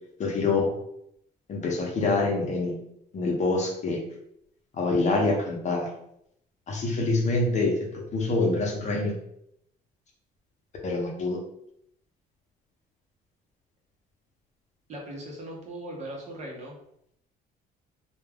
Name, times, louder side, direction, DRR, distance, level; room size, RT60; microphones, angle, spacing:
voice 1, 0.2-0.7 1.5-2.8 3.1-4.0 4.7-5.9 6.7-9.1 10.8-11.4, left 3 dB, 45° left, 0 dB, 0.7 m, -26 dB
voice 2, 14.9-16.8, right 1 dB, 40° right, -1 dB, 0.8 m, -39 dB
2.2 x 2.2 x 3.4 m, 0.74 s
cardioid pair, 110°, 17 cm